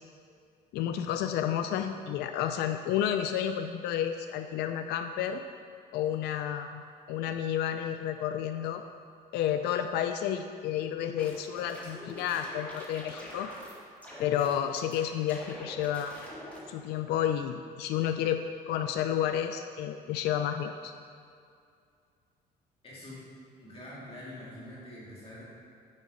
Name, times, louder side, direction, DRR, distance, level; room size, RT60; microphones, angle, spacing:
voice 1, 0.7-5.4 5.9-6.8 7.1-8.8 9.3-13.5 14.2-16.2 16.7-20.9, left 10 dB, 75° left, 8 dB, 0.4 m, -31 dB
sound 1, 10.9-13.8 14.0-15.0 15.3-16.6, left 1 dB, 10° left, 1.7 m, -45 dB
voice 2, 22.8-23.2 23.6-25.4, left 1 dB, 35° left, -7 dB, 2.1 m, -45 dB
6.8 x 6.5 x 4.9 m, 2.4 s
cardioid pair, 110°, 17 cm